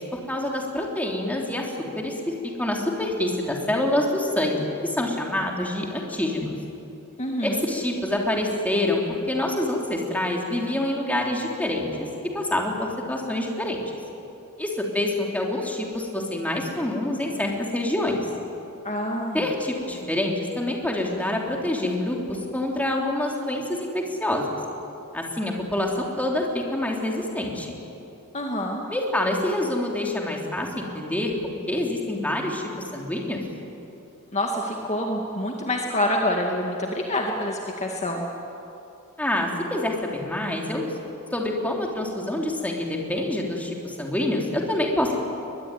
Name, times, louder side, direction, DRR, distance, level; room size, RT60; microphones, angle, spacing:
voice 1, 0.1-6.5 7.4-11.9 12.3-13.8 14.6-18.2 19.3-24.5 25.1-27.7 28.9-31.3 31.7-32.6 32.9-33.4 39.2-40.9 41.3-45.1, left 1 dB, 5° left, 0 dB, 3.3 m, -26 dB
voice 2, 7.2-7.6 18.8-19.5 28.3-28.8 34.3-38.3, left 1 dB, 30° left, 1 dB, 2.0 m, -27 dB
22.5 x 21.5 x 9.8 m, 2.9 s
head